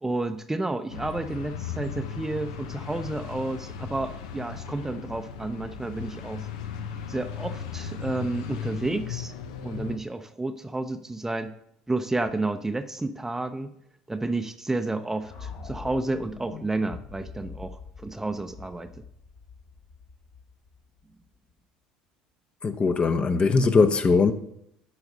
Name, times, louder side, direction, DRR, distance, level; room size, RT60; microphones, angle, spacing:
voice 1, 0.0-6.5 7.1-9.3 9.6-11.5 11.9-13.7 14.1-19.0, right 2 dB, 10° right, 0.6 m, -31 dB
sound 1, 0.9-10.0, left 7 dB, 80° left, 0.8 m, -37 dB
sound 2, 15.2-21.3, left 5 dB, 60° left, 1.7 m, -44 dB
voice 2, 22.6-24.3, left 4 dB, 30° left, 0.8 m, -20 dB
9.8 x 4.9 x 5.4 m
hypercardioid pair, 75°, 3 cm